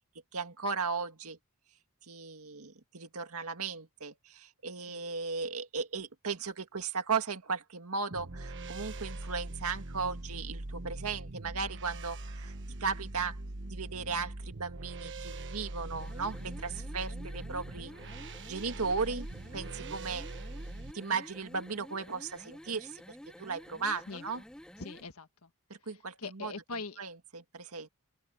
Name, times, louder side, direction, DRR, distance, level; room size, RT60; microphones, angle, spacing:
voice 1, 0.3-1.4 2.1-12.5 12.8-13.4 13.7-17.9 18.5-19.3 19.5-20.3 20.9-24.4 25.9-26.5 27.0-27.9, right 5 dB, 75° right, 2.0 m, -36 dB
sound 1, 8.1-20.9, right 2 dB, 55° right, 1.3 m, -42 dB
sound 2, 15.9-25.1, equal, 5° left, 0.7 m, -51 dB
voice 2, 24.8-25.5 25.9-27.0, left 4 dB, 75° left, 1.5 m, -42 dB
open air
head